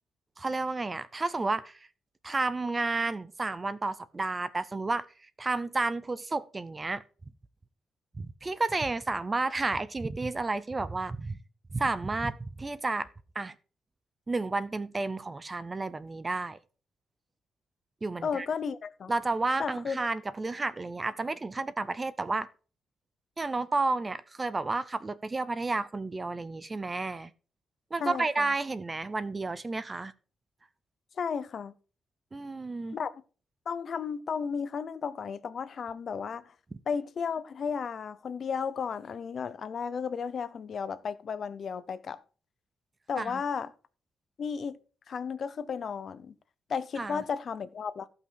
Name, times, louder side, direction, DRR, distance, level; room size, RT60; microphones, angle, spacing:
voice 1, 0.4-1.8 2.2-5.1 5.4-7.0 8.2-11.4 11.7-13.1 13.3-13.5 14.3-16.6 18.0-18.5 19.1-22.5 23.4-27.3 27.9-30.1 32.3-33.0 43.2-43.4 47.0-47.2, right 3 dB, 20° right, 0.6 m, -31 dB
voice 2, 18.2-19.1 19.6-20.0 28.0-28.5 31.2-31.7 32.9-33.2 33.7-36.4 36.9-42.2 43.1-43.7 44.4-44.8 45.1-46.3 46.7-48.1, left 6 dB, 40° left, 0.6 m, -34 dB
15.0 x 5.7 x 4.7 m
wide cardioid pair, 170°, 0 cm